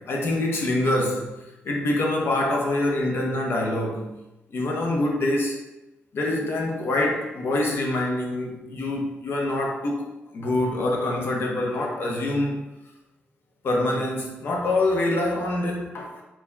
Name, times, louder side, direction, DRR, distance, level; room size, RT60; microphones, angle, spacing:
voice 1, 0.0-4.1 4.5-5.6 6.1-10.0 10.3-12.6 13.6-16.2, left 1 dB, 60° left, 0 dB, 0.7 m, -25 dB
4.0 x 2.7 x 2.2 m, 0.99 s
cardioid pair, 90°, 4 cm